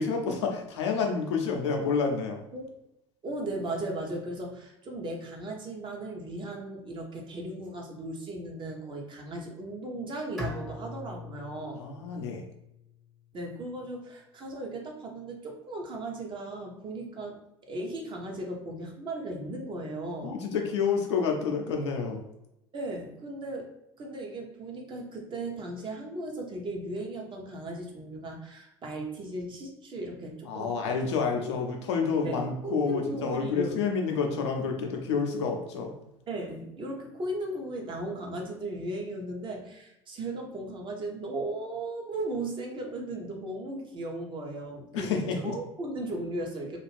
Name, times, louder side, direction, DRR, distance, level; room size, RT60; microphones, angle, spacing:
voice 1, 0.0-2.4 11.7-12.4 20.2-22.2 30.5-35.9 44.9-45.6, left 5 dB, 70° left, 2 dB, 0.6 m, -29 dB
voice 2, 3.2-11.8 13.3-20.3 22.7-23.7 24.0-30.9 31.4-31.5 32.2-33.8 36.3-46.8, right 1 dB, 35° right, 0 dB, 0.8 m, -36 dB
Bowed string instrument, 10.4-13.4, left 1 dB, ahead, 0.8 m, -41 dB
2.5 x 2.4 x 3.3 m, 0.85 s
figure-of-eight pair, 70°, 15 cm